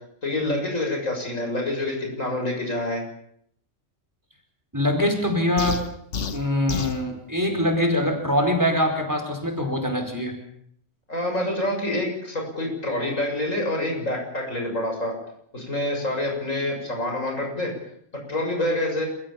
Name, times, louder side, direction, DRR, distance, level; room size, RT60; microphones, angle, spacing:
voice 1, 0.2-3.0 11.1-15.1 15.5-17.7 18.3-19.1, left 1 dB, 85° left, 1 dB, 7.4 m, -27 dB
voice 2, 4.7-5.9 6.3-10.3, left 1 dB, 15° right, 4 dB, 4.8 m, -23 dB
sound 1, 5.6-7.0, left 5 dB, 65° left, 1.6 m, -29 dB
30.0 x 15.5 x 7.3 m, 0.70 s
omnidirectional pair, 1.3 m